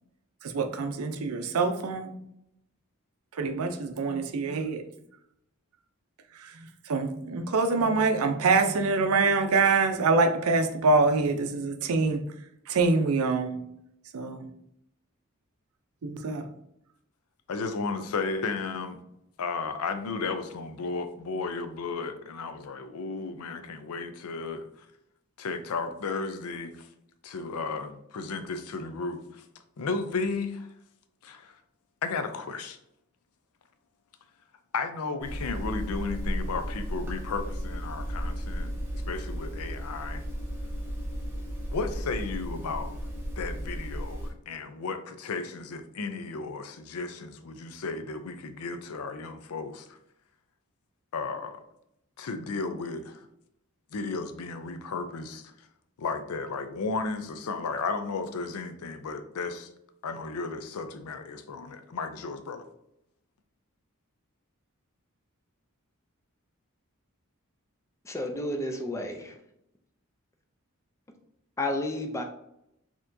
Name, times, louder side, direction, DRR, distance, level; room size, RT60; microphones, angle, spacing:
voice 1, 0.4-2.1 3.3-4.9 6.3-6.6 6.9-12.2 12.7-13.6 14.1-14.4 16.0-16.5, right 3 dB, 80° right, 0.5 m, -25 dB
voice 2, 17.5-19.0 19.4-24.7 25.4-26.9 27.2-29.4 29.8-30.7 31.2-31.5 32.0-32.8 34.7-38.7 39.1-40.2 41.7-43.0 43.4-50.0 51.1-51.6 52.2-53.3 53.9-55.5 56.0-59.7 60.0-62.6, left 4 dB, 85° left, 0.5 m, -34 dB
sound 1, 35.2-44.3, equal, 10° right, 0.7 m, -34 dB
voice 3, 68.0-69.4 71.6-72.2, left 1 dB, 15° left, 0.4 m, -31 dB
4.3 x 2.9 x 2.6 m
head